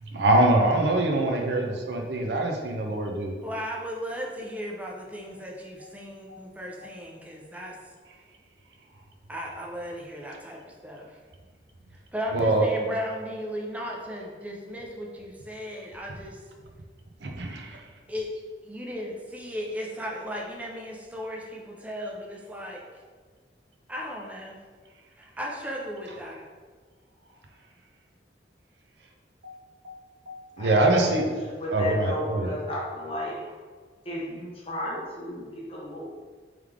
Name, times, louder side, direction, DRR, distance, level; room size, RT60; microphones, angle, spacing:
voice 1, 0.0-3.3 6.3-6.4 6.8-6.9 12.3-12.7 17.2-17.8 29.4-31.3 31.7-32.5, right 2 dB, 75° right, 2 dB, 0.6 m, -24 dB
voice 2, 3.4-7.8 9.3-11.2 12.1-16.4 18.1-18.3 18.6-22.8 23.9-24.6 25.2-26.5, equal, 10° right, -1 dB, 0.4 m, -36 dB
voice 3, 30.6-31.1 31.4-33.4 34.0-36.1, left 1 dB, 35° left, -5 dB, 1.0 m, -33 dB
3.6 x 3.3 x 3.4 m, 1.5 s
head